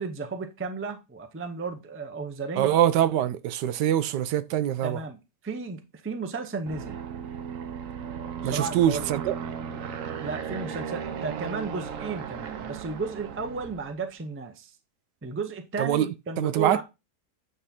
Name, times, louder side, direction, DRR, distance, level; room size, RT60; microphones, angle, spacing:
voice 1, 0.0-2.7 4.8-7.0 8.4-9.1 10.2-14.8 15.2-16.8, right 4 dB, 20° right, 0.3 m, -34 dB
voice 2, 2.6-5.0 8.4-9.3 15.8-16.1 16.4-16.8, right 11 dB, 85° right, 1.2 m, -24 dB
Aircraft, 6.7-14.0, right 7 dB, 60° right, 1.0 m, -36 dB
8.7 x 3.7 x 4.2 m
omnidirectional pair, 1.8 m